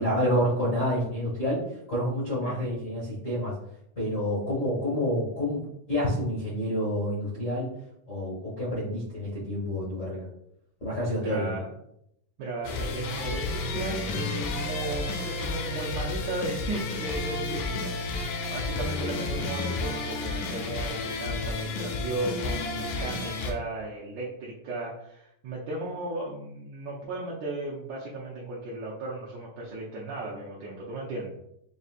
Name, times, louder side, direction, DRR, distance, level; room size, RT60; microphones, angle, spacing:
voice 1, 0.0-1.6 1.9-3.5 4.0-5.6 5.9-7.7 8.1-10.2 10.8-11.6, equal, 60° left, -9 dB, 0.8 m, -28 dB
voice 2, 11.2-11.7 12.4-31.4, right 2 dB, 75° right, -5 dB, 1.8 m, -36 dB
sound 1, 12.6-23.5, left 3 dB, 80° left, 1.9 m, -31 dB
6.1 x 2.7 x 2.4 m, 0.77 s
omnidirectional pair, 3.7 m